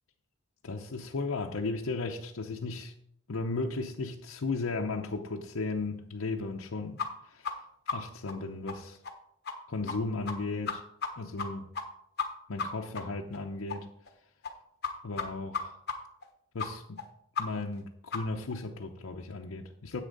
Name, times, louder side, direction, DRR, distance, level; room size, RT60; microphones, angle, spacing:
voice 1, 0.6-2.9 3.3-7.6 7.9-9.0 9.7-10.8 11.2-11.7 12.5-13.9 15.0-15.8 16.5-17.0 17.4-20.0, left 3 dB, 70° left, 1 dB, 0.7 m, -35 dB
sound 1, 7.0-7.1 7.4-7.5 7.9-8.0 8.3-8.4 8.7-8.8 9.0-9.1 9.4-9.5 9.9-10.0 10.3-10.4 10.7-11.1 11.4-11.5 11.7-11.8 12.2-12.3 12.6-12.7 12.9-13.0 13.3-13.4 13.7-13.8 14.1-14.2 14.4-14.5 14.8-14.9 15.2-15.3 15.5-15.6 15.9-16.0 16.2-16.3 16.6-16.7 17.0-17.1 17.3-17.4 17.7-17.8 18.1-18.2 18.5-18.6, left 5 dB, 50° left, 1.1 m, -33 dB
9.8 x 8.2 x 3.9 m, 0.71 s
head